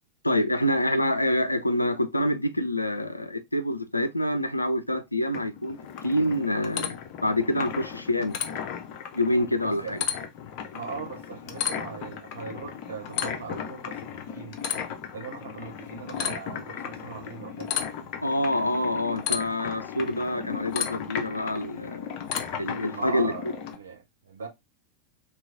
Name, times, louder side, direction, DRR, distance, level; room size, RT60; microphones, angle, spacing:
voice 1, 0.2-5.8 6.0-8.4 9.1-10.0 18.2-22.1 22.6-23.3, left 1 dB, 85° left, 0.4 m, -26 dB
sound 1, 5.3-23.8, left 8 dB, 45° left, 0.7 m, -35 dB
voice 2, 9.6-10.0 10.7-14.6 15.1-17.8 22.9-24.5, right 6 dB, 65° right, 0.9 m, -40 dB
3.0 x 2.9 x 3.7 m
figure-of-eight pair, 90°, 0 cm